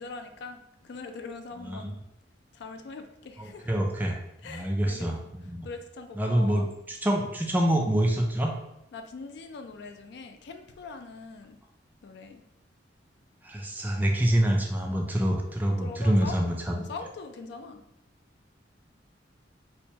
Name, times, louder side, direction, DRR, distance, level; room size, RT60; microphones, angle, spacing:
voice 1, 0.0-2.0 2.5-3.7 4.4-5.1 5.6-6.7 8.9-11.6 12.0-12.4 14.9-15.1 15.6-17.8, left 4 dB, 65° left, 7 dB, 0.4 m, -42 dB
voice 2, 1.6-2.0 3.4-4.1 4.4-5.2 5.5-5.7 6.2-8.5 13.4-16.7, right 1 dB, 10° right, 1 dB, 0.4 m, -26 dB
4.4 x 2.2 x 2.8 m, 0.83 s
head